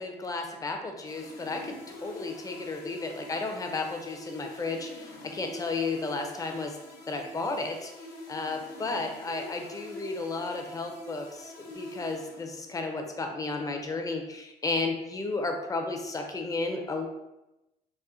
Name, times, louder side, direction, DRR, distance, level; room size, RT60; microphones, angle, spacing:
voice 1, 0.0-6.8 7.1-7.9 8.3-17.1, left 3 dB, 20° left, 4 dB, 0.4 m, -33 dB
sound 1, 1.0-12.9, left 2 dB, 75° left, 0.7 m, -45 dB
4.2 x 2.1 x 2.4 m, 0.94 s
cardioid pair, 110°, 17 cm